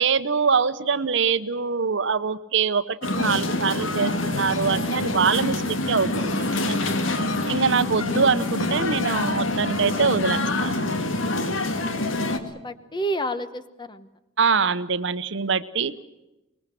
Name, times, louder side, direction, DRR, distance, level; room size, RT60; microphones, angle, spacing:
voice 1, 0.0-6.3 6.7-6.9 7.5-10.9 14.4-15.9, right 5 dB, 65° right, 13 dB, 0.9 m, -24 dB
sound 1, 3.0-12.4, left 2 dB, 85° left, 2.0 m, -26 dB
voice 2, 11.4-14.1, right 1 dB, 25° left, 12 dB, 1.1 m, -32 dB
24.5 x 21.0 x 7.7 m, 0.97 s
head